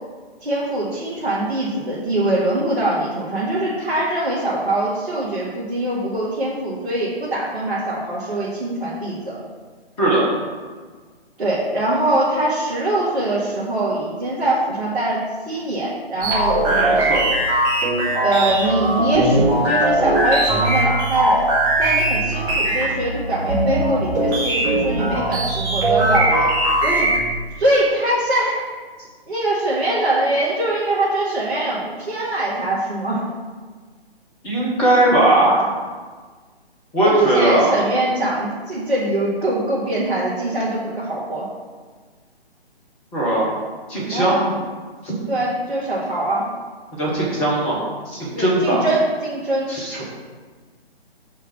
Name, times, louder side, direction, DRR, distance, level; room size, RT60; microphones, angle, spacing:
voice 1, 0.4-9.2 11.4-17.0 18.2-21.4 21.8-26.5 26.8-27.1 27.6-28.6 29.3-33.2 37.0-41.5 44.1-44.4 45.3-46.5 48.3-49.7 50.0-50.1, right 1 dB, 60° right, -8 dB, 2.1 m, -22 dB
sound 1, 16.2-27.4, right 1 dB, 10° right, 1.7 m, -20 dB
voice 2, 16.7-17.2 34.4-35.7 36.9-37.8 43.1-43.5 43.9-44.4 45.0-45.1 47.0-48.9 49.7-50.0, right 1 dB, 5° left, -4 dB, 0.5 m, -19 dB
6.6 x 4.7 x 5.9 m, 1.5 s
figure-of-eight pair, 140°, 32 cm